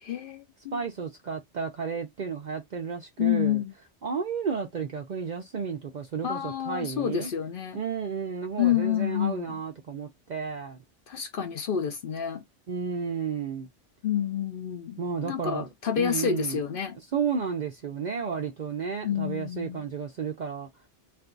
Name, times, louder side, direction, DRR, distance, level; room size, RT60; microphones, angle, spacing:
voice 1, 0.0-0.8 3.2-3.7 6.2-7.8 8.6-9.6 11.1-12.4 14.0-17.0 19.0-19.8, left 9 dB, 60° left, 0.6 m, -29 dB
voice 2, 0.7-3.6 4.0-7.3 7.7-10.8 12.7-13.7 15.0-15.7 16.0-16.6 17.1-20.7, right 6 dB, 55° right, 0.5 m, -32 dB
2.6 x 2.3 x 3.7 m
omnidirectional pair, 1.2 m